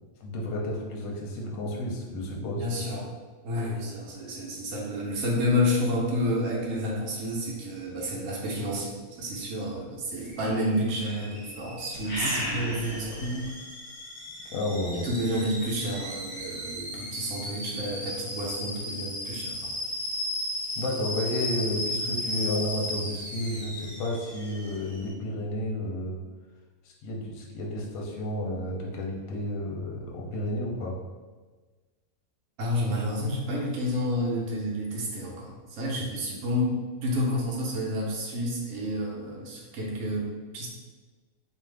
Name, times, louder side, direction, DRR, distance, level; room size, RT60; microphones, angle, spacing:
voice 1, 0.2-2.7 14.5-15.1 20.8-26.2 26.8-30.9, left 1 dB, 65° left, -2 dB, 0.9 m, -31 dB
voice 2, 2.4-3.1 3.4-13.3 15.0-19.5 32.6-40.3 40.5-40.7, left 1 dB, 65° right, -2 dB, 0.9 m, -30 dB
Alarm / Boiling, 10.2-25.1, left 1 dB, 15° left, 0.4 m, -36 dB
sound 1, 11.9-13.5, equal, 35° left, 0.9 m, -30 dB
2.5 x 2.4 x 3.2 m, 1.3 s
omnidirectional pair, 1.6 m